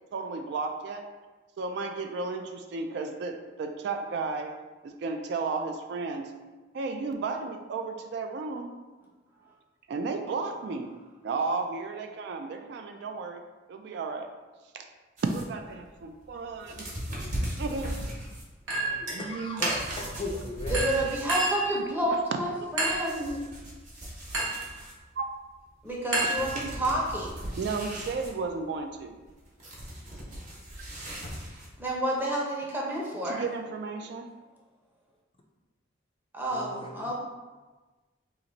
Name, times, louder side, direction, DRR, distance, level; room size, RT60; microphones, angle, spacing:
voice 1, 0.1-1.0 1.6-4.5 4.8-6.3 6.7-8.7 9.9-10.9 11.2-13.4 13.7-14.3 14.7-14.8 15.2-16.8 17.6-17.9 19.1-19.6 20.0-20.1 22.6-22.7 25.2-25.3 26.2-26.6 27.6-29.1 33.2-34.3, right 4 dB, 65° right, 5 dB, 0.3 m, -33 dB
sound 1, 15.2-21.6 21.9-25.2 25.9-26.0 26.2-31.9, equal, 40° right, 0.9 m, -38 dB
voice 2, 18.7-20.9 36.5-37.1, left 1 dB, 30° left, 1 dB, 0.4 m, -38 dB
Chink clink, 18.7-19.2 19.6-20.1 20.7-21.7 22.8-23.2 24.3-24.7 26.1-26.9, right 2 dB, 85° right, 0.9 m, -29 dB
voice 3, 20.7-23.4 25.8-27.5 31.8-33.4 36.3-37.1, right 1 dB, 10° right, -4 dB, 0.7 m, -30 dB
2.9 x 2.5 x 3.9 m, 1.2 s
head